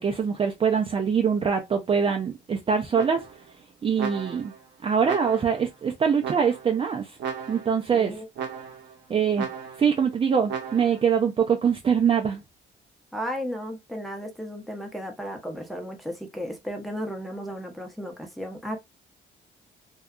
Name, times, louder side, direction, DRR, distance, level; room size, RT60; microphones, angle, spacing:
voice 1, 0.0-3.2 3.8-4.5 4.8-7.2 7.5-8.1 9.1-9.5 9.8-12.4, right 7 dB, 30° right, 0.4 m, -23 dB
sound 1, 2.9-3.5 4.0-4.6 5.0-5.7 6.2-6.8 7.2-7.8 8.4-9.0 9.4-10.0 10.5-11.1, right 7 dB, 65° right, 0.7 m, -35 dB
voice 2, 7.9-8.3 13.1-18.8, equal, ahead, 0.7 m, -34 dB
2.7 x 2.2 x 2.3 m
cardioid pair, 90°, 20 cm